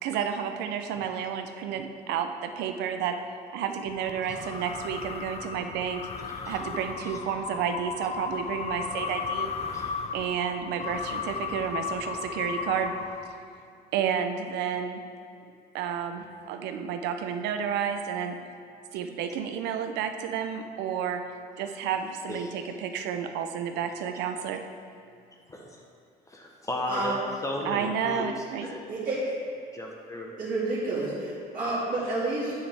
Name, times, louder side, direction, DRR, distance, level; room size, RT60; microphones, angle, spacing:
voice 1, 0.0-3.2 3.5-6.1 6.5-9.5 10.1-12.9 13.9-15.0 15.7-18.4 18.9-21.2 21.6-24.6 27.6-28.7, right 8 dB, 90° right, 7 dB, 0.6 m, -31 dB
sound 1, 3.9-13.6, left 6 dB, 40° left, 0.6 m, -35 dB
voice 2, 26.3-28.3 28.6-28.8 29.7-30.3, left 1 dB, 20° left, -1 dB, 1.0 m, -34 dB
voice 3, 26.9-27.2 28.9-29.4 30.4-32.5, right 2 dB, 55° right, -10 dB, 2.1 m, -29 dB
8.9 x 7.4 x 3.4 m, 2.4 s
cardioid pair, 110°, 17 cm